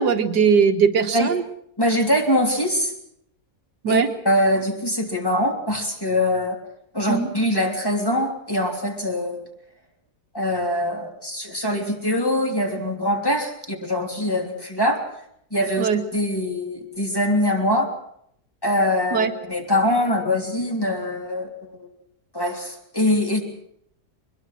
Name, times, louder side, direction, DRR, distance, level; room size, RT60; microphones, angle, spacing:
voice 1, 0.0-1.4 3.8-4.1 7.1-7.3 15.8-16.0 19.1-19.3, right 6 dB, 85° right, 7 dB, 2.0 m, -19 dB
voice 2, 1.8-2.9 3.9-6.6 6.9-9.4 10.3-15.0 15.5-17.9 18.6-21.5 21.8-21.9 22.3-23.4, left 1 dB, 15° left, 1 dB, 3.4 m, -23 dB
23.0 x 21.5 x 6.3 m, 0.71 s
omnidirectional pair, 1.7 m